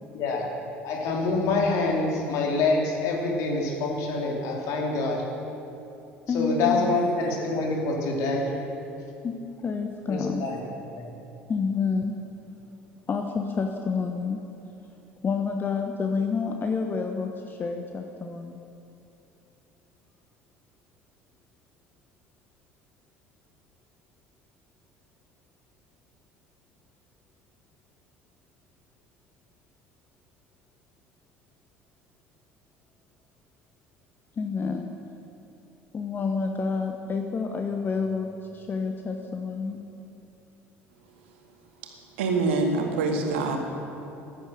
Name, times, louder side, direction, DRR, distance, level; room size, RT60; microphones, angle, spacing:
voice 1, 0.1-0.4 0.8-5.2 6.3-8.5 10.1-10.6 10.9-11.1, left 3 dB, 55° left, -1 dB, 3.0 m, -26 dB
voice 2, 6.3-7.0 9.2-9.4 9.6-10.4 11.5-12.2 13.1-14.4 15.2-18.6 34.4-34.9 35.9-39.8, left 5 dB, 30° left, 4 dB, 1.1 m, -29 dB
voice 3, 42.2-43.6, right 3 dB, 65° right, 2 dB, 2.0 m, -25 dB
15.5 x 12.0 x 6.6 m, 2.7 s
figure-of-eight pair, 60°, 7 cm